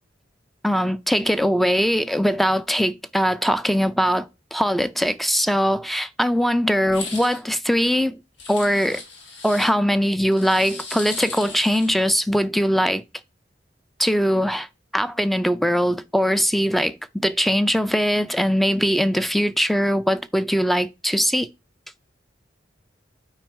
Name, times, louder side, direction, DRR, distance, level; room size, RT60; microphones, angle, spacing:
voice 1, 0.6-8.2 8.5-9.0 9.4-13.0 14.0-14.7 14.9-21.5, equal, ahead, 0.3 m, -21 dB
sound 1, 6.9-7.4 8.4-9.7 10.3-12.0, left 4 dB, 85° left, 1.8 m, -36 dB
9.0 x 4.3 x 4.6 m
head